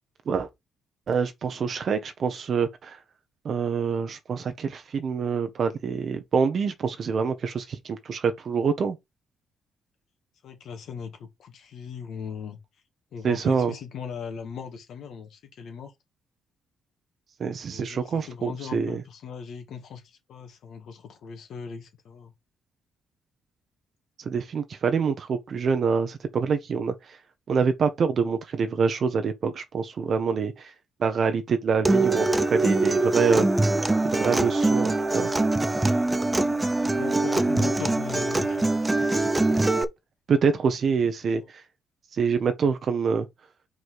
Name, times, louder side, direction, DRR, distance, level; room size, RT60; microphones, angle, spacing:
voice 1, 1.1-3.0 3.4-9.0 13.2-13.7 17.4-19.0 24.2-27.2 27.5-30.7 31.0-33.5 34.0-35.3 40.3-41.6 42.1-43.3, right 5 dB, 50° right, 0.9 m, -26 dB
voice 2, 10.4-12.6 13.1-15.9 17.7-22.3 36.8-38.7 41.4-41.5, left 7 dB, 70° left, 1.8 m, -39 dB
Acoustic guitar, 31.8-39.8, right 2 dB, 15° right, 0.7 m, -23 dB
4.9 x 4.1 x 4.7 m
cardioid pair, 90°, 0 cm